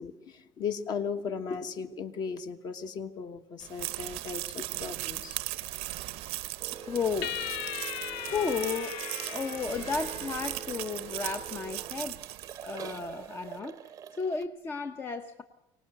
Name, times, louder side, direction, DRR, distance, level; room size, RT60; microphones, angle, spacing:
voice 1, 0.0-5.4, left 6 dB, 40° left, 9 dB, 1.3 m, -36 dB
sound 1, 3.6-13.1, right 18 dB, 65° right, 0.7 m, -38 dB
voice 2, 6.2-7.3 8.2-15.4, left 5 dB, 20° left, 8 dB, 0.7 m, -34 dB
sound 2, 6.6-14.5, right 8 dB, 30° right, 0.7 m, -45 dB
sound 3, 7.2-10.8, left 13 dB, 80° left, 0.8 m, -38 dB
24.5 x 18.5 x 7.9 m, 0.90 s
cardioid pair, 180°, 11 cm